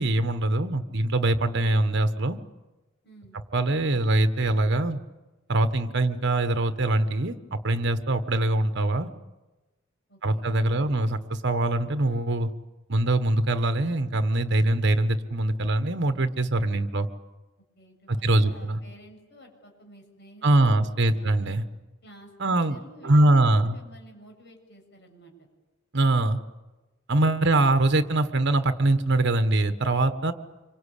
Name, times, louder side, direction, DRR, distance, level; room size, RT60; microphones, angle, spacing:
voice 1, 0.0-2.4 3.5-5.0 5.5-9.1 10.2-12.5 12.9-17.1 18.1-18.8 20.4-21.6 22.4-22.8 23.0-23.8 25.9-26.4 27.1-30.3, right 2 dB, 60° right, 9 dB, 1.4 m, -23 dB
voice 2, 3.0-3.4 6.0-6.1 10.1-11.0 17.8-20.9 21.2-21.3 22.0-25.5, equal, 55° left, 2 dB, 7.4 m, -51 dB
26.5 x 25.0 x 8.5 m, 1.1 s
head